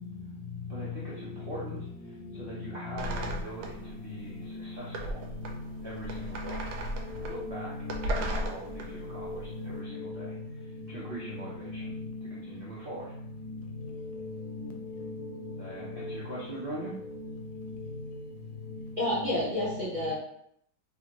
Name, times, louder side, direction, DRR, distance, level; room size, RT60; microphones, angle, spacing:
voice 1, 0.7-1.8 2.1-5.2 5.8-6.7 7.1-10.3 10.9-11.9 12.3-13.2 15.6-16.9, right 1 dB, 90° right, -7 dB, 0.4 m, -42 dB
sound 1, 3.0-3.9 4.2-4.3 4.9-9.5, right 1 dB, 70° right, 1.0 m, -36 dB
voice 2, 5.8-6.7 7.3-8.8 9.1-10.4 11.6-12.4 13.4-13.6 14.1-15.1 16.0-16.1 16.8-17.7 19.2-19.3 19.6-19.8, left 2 dB, 80° left, 3 dB, 1.3 m, -39 dB
voice 3, 19.0-20.1, left 1 dB, 40° right, -9 dB, 0.7 m, -29 dB
3.1 x 2.6 x 2.9 m, 0.70 s
omnidirectional pair, 2.0 m